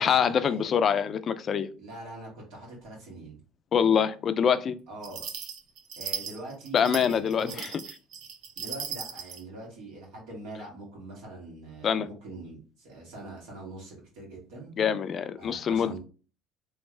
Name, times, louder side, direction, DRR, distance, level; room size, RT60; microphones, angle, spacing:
voice 1, 0.0-1.7 3.7-4.7 6.7-7.7 11.8-12.1 14.8-16.0, left 7 dB, 45° left, 0.3 m, -25 dB
voice 2, 1.8-3.4 4.9-5.3 6.0-7.7 8.6-14.7 15.4-16.0, right 2 dB, 85° right, 2.1 m, -43 dB
sound 1, 5.0-9.4, right 7 dB, 65° right, 0.7 m, -38 dB
3.5 x 3.2 x 3.2 m
cardioid pair, 110°, 0 cm